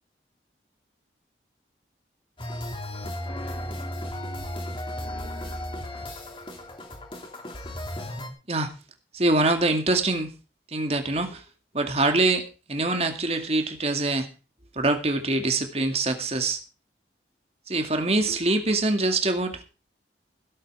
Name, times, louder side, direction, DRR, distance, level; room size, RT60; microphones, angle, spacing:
sound 1, 2.4-8.3, left 1 dB, 30° left, 3.0 m, -35 dB
voice 1, 9.1-10.3 10.7-11.4 11.7-14.3 14.7-16.6 17.7-19.6, right 2 dB, 35° right, 6 dB, 2.1 m, -24 dB
17.0 x 8.4 x 4.8 m, 0.33 s
head